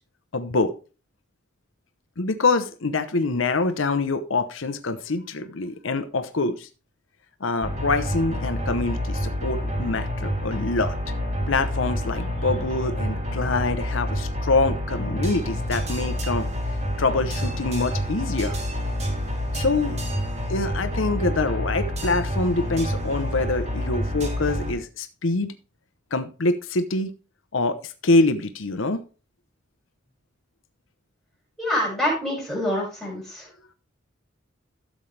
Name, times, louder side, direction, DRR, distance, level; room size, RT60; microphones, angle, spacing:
voice 1, 0.3-0.7 2.2-6.7 7.4-10.9 11.5-16.5 17.0-18.6 19.5-20.0 20.5-25.5 26.1-27.1 27.5-29.0, left 3 dB, 90° left, 9 dB, 0.9 m, -25 dB
sound 1, 7.6-24.7, equal, 35° right, 2.1 m, -28 dB
voice 2, 31.6-33.5, left 1 dB, ahead, -5 dB, 6.0 m, -26 dB
12.5 x 7.3 x 3.4 m, 0.34 s
head